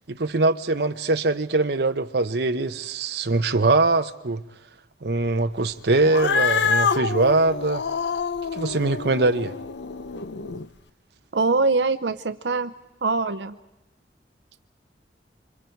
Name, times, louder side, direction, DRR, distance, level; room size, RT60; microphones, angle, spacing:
voice 1, 0.1-4.4 5.0-7.8 8.5-9.5, right 2 dB, 65° right, 0.9 m, -22 dB
Cat, 6.0-10.7, left 6 dB, 75° left, 0.7 m, -26 dB
voice 2, 11.3-12.7 13.0-13.5, right 3 dB, 85° right, 0.8 m, -23 dB
28.0 x 25.5 x 4.6 m
head